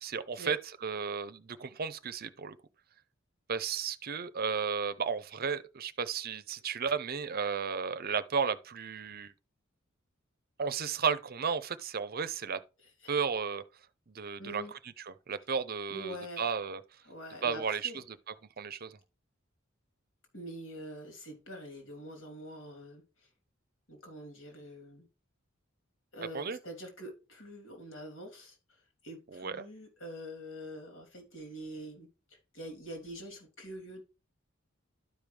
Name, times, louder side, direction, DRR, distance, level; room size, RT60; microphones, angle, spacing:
voice 1, 0.0-2.6 3.5-9.3 10.6-12.6 13.1-13.6 14.1-14.6 15.0-16.8 17.4-19.0 26.3-26.6 29.3-29.7, right 6 dB, 50° right, 0.6 m, -34 dB
voice 2, 14.4-14.7 15.9-16.5 17.0-18.0 20.3-23.0 23.9-25.1 26.1-28.8 29.0-34.0, equal, 75° left, 3.2 m, -45 dB
12.0 x 5.3 x 3.3 m
head